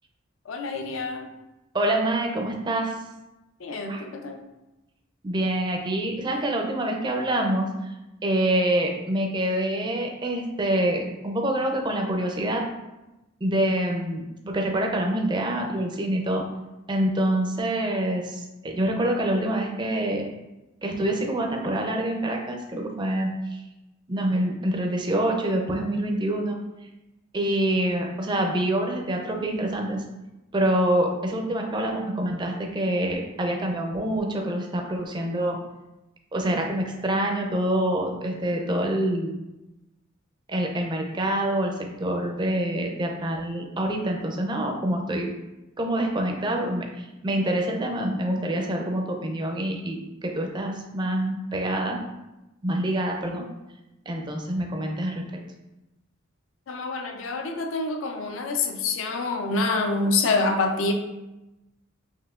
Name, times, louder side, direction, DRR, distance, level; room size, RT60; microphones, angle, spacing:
voice 1, 0.5-1.3 3.6-4.4 56.7-60.9, left 3 dB, 70° left, 4 dB, 0.5 m, -26 dB
voice 2, 1.7-2.9 3.9-4.0 5.2-7.9 8.2-12.6 13.4-16.4 16.9-20.2 20.8-23.6 24.1-26.6 27.3-30.0 30.5-35.6 36.3-39.3 40.5-41.7 42.0-45.3 45.8-52.0 52.6-53.5 54.1-55.3, right 1 dB, 20° right, 2 dB, 0.4 m, -26 dB
5.6 x 2.7 x 2.4 m, 1.0 s
head